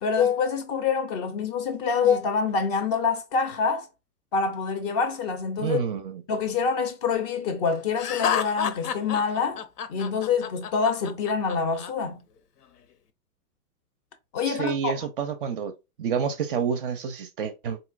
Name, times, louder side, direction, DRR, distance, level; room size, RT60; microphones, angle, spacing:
voice 1, 0.0-3.9 4.3-5.8 6.3-9.6 9.9-12.2 14.3-14.9, left 5 dB, 30° left, 0.4 m, -26 dB
voice 2, 5.6-6.2 14.4-15.7 16.0-17.8, right 7 dB, 40° right, 0.4 m, -28 dB
Laughter, 8.0-11.9, left 8 dB, 85° left, 0.7 m, -30 dB
3.9 x 2.7 x 2.4 m
hypercardioid pair, 120°, 46 cm